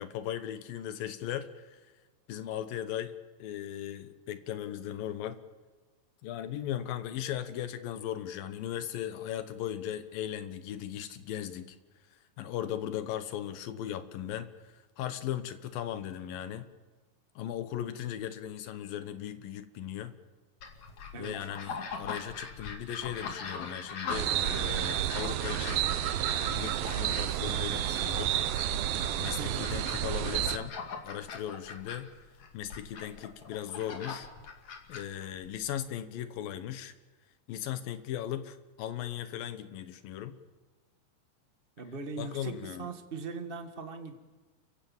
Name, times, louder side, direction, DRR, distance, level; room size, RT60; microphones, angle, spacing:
voice 1, 0.0-1.8 2.3-3.1 3.4-5.4 6.2-11.8 12.1-16.7 17.4-20.1 21.1-25.8 26.5-28.3 29.2-30.8 31.0-32.1 32.5-34.3 34.9-36.9 37.5-40.4 42.2-42.9, left 11 dB, 80° left, 11 dB, 2.9 m, -37 dB
sound 1, 20.6-35.8, left 5 dB, 55° left, 3.6 m, -42 dB
sound 2, 24.1-30.6, right 11 dB, 85° right, 2.7 m, -30 dB
voice 2, 29.4-29.7 41.8-44.1, right 4 dB, 30° right, 7 dB, 1.1 m, -40 dB
29.5 x 16.0 x 7.2 m, 1.3 s
omnidirectional pair, 4.0 m